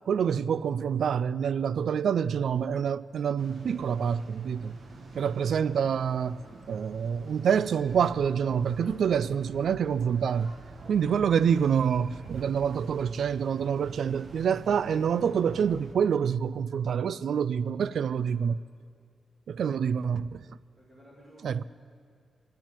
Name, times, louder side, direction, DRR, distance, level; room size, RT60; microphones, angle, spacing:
voice 1, 0.1-4.8 5.2-10.5 10.9-18.6 19.5-20.5 21.4-21.6, right 7 dB, 70° right, 0.3 m, -27 dB
sound 1, 3.4-16.0, right 3 dB, 50° right, 1.2 m, -47 dB
voice 2, 20.8-21.6, equal, 5° right, 2.2 m, -54 dB
11.5 x 10.5 x 9.8 m
wide cardioid pair, 165°, 0 cm